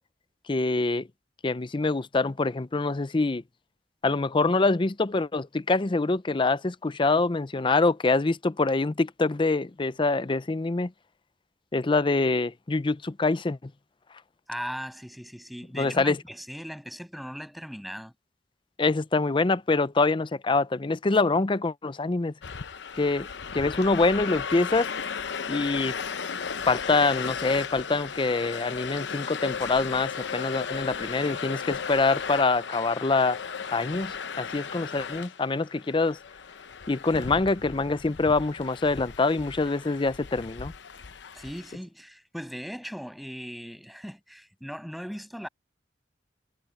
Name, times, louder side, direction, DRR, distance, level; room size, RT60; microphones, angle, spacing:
voice 1, 0.5-1.1 1.4-3.4 4.0-10.9 11.7-13.7 15.7-16.2 18.8-22.3 23.0-23.3 23.5-24.9 25.5-26.0 26.7-33.4 33.7-36.2 36.9-40.7, left 3 dB, 30° left, 0.6 m, -25 dB
voice 2, 14.5-18.1 41.3-45.5, equal, ahead, 7.7 m, -38 dB
sound 1, 22.4-41.8, left 6 dB, 85° left, 0.8 m, -36 dB
head